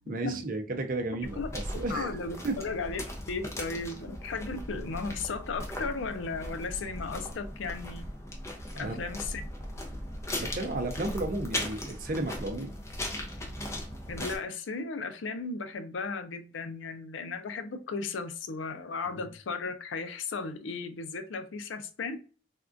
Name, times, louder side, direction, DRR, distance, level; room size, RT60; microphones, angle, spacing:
voice 1, 0.1-2.2 2.4-2.6 8.7-9.1 10.4-12.7, right 2 dB, 45° right, 0.5 m, -33 dB
sound 1, 1.2-14.4, left 1 dB, 15° left, 0.5 m, -38 dB
voice 2, 1.9-8.1 8.8-9.4 14.1-22.2, left 4 dB, 85° left, 0.5 m, -35 dB
3.5 x 2.3 x 2.4 m
head